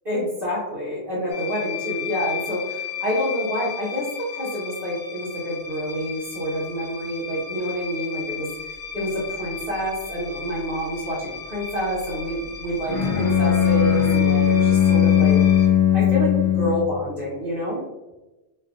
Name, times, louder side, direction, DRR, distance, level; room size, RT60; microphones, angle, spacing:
voice 1, 0.0-15.4 15.9-17.8, equal, 55° right, -11 dB, 1.6 m, -28 dB
sound 1, 1.3-15.7, left 7 dB, 75° left, 1.0 m, -35 dB
Bowed string instrument, 12.9-16.9, left 9 dB, 40° left, 0.5 m, -18 dB
4.6 x 2.6 x 2.5 m, 1.1 s
omnidirectional pair, 1.2 m